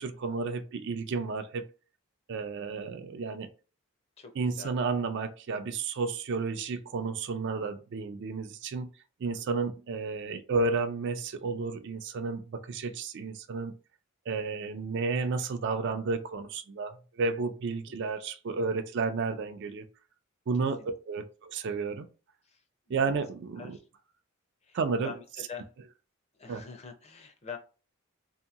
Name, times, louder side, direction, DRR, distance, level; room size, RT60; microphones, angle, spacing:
voice 1, 0.0-1.6 2.3-3.5 4.4-8.9 9.2-13.7 14.3-19.8 20.5-22.1 22.9-23.8 24.7-25.1 26.5-26.6, right 4 dB, 55° right, 0.4 m, -32 dB
voice 2, 4.2-4.7 9.2-9.4 19.3-19.4 20.8-20.9 21.1-21.2 22.4-22.6 22.9-23.0 23.6-23.8 24.6-24.8 25.0-25.2 25.5-25.7 26.4-27.6, left 6 dB, 30° left, 0.5 m, -44 dB
2.8 x 2.6 x 2.4 m
head